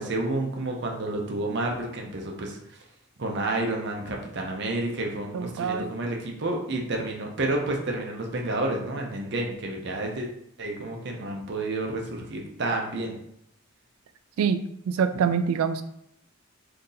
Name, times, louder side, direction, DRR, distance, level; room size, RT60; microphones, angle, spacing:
voice 1, 0.0-2.6 3.2-10.3 10.6-13.2 15.1-15.2, right 2 dB, 55° right, 1 dB, 0.6 m, -30 dB
voice 2, 5.3-5.9 14.4-14.6 14.9-15.8, right 6 dB, 90° right, 11 dB, 0.3 m, -25 dB
2.8 x 2.6 x 3.8 m, 0.74 s
head